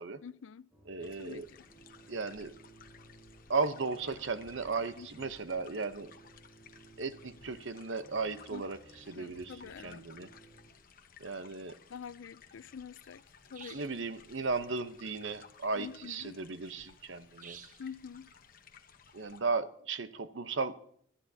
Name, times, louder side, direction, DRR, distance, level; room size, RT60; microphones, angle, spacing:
voice 1, 0.2-0.7 1.0-1.7 5.0-5.3 8.5-8.7 9.2-10.1 11.9-13.8 15.8-16.4 17.8-18.3, left 6 dB, 80° left, 0.4 m, -47 dB
sound 1, 0.7-10.7, right 1 dB, ahead, 3.7 m, -58 dB
voice 2, 0.9-1.5 2.1-2.5 3.5-6.1 7.0-8.8 9.1-9.5 9.8-10.3 11.2-11.8 13.7-17.6 19.1-20.8, right 4 dB, 75° right, 0.8 m, -35 dB
sound 2, 1.0-19.4, left 6 dB, 45° left, 1.0 m, -58 dB
sound 3, 13.5-14.0 17.4-17.9, right 8 dB, 40° right, 0.7 m, -50 dB
24.0 x 13.0 x 2.8 m
head